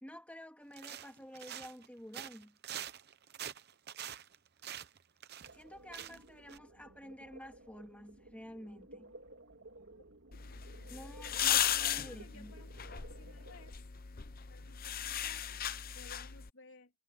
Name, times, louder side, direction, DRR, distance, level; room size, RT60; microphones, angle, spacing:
voice 1, 0.0-2.6 5.5-9.1 10.9-12.5, equal, 5° left, 2.4 m, -51 dB
sound 1, 0.7-1.9 2.1-5.6 5.9-6.2 6.5-6.6, right 10 dB, 45° right, 0.8 m, -45 dB
sound 2, 5.4-13.7, right 2 dB, 60° right, 3.3 m, -55 dB
sound 3, 10.3-16.5, left 10 dB, 40° left, 0.7 m, -36 dB
voice 2, 12.0-13.8 14.5-16.9, left 3 dB, 70° left, 2.6 m, -59 dB
head